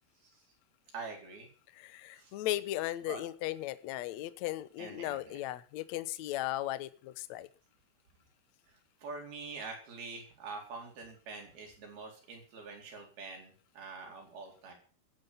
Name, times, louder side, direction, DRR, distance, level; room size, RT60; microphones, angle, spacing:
voice 1, 0.9-1.5 2.1-2.3 3.1-3.2 4.8-5.4 8.7-14.7, right 4 dB, 75° right, 1 dB, 6.1 m, -45 dB
voice 2, 1.7-7.5, left 15 dB, 90° left, 14 dB, 1.6 m, -36 dB
15.0 x 9.7 x 7.1 m, 0.40 s
omnidirectional pair, 4.5 m